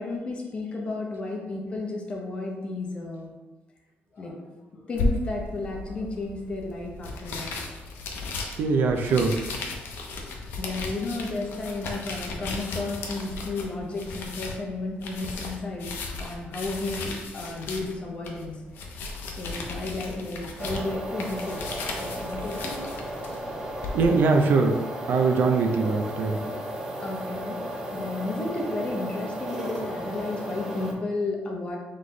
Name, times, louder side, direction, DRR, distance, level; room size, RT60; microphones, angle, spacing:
voice 1, 0.0-3.3 4.1-4.4 4.7-7.5 10.0-15.9 16.2-18.6 19.2-21.6 22.0-22.8 23.8-23.9 27.0-27.6 27.9-31.8, left 2 dB, 30° left, 0 dB, 0.8 m, -33 dB
sound 1, 5.0-24.1, left 3 dB, 70° left, 0.7 m, -35 dB
voice 2, 8.6-9.4 23.9-24.8 25.1-26.4, right 4 dB, 60° right, 4 dB, 0.5 m, -22 dB
sound 2, 20.6-30.9, right 1 dB, 15° right, 0.6 m, -34 dB
4.0 x 3.2 x 3.8 m, 1.2 s
cardioid pair, 165°, 4 cm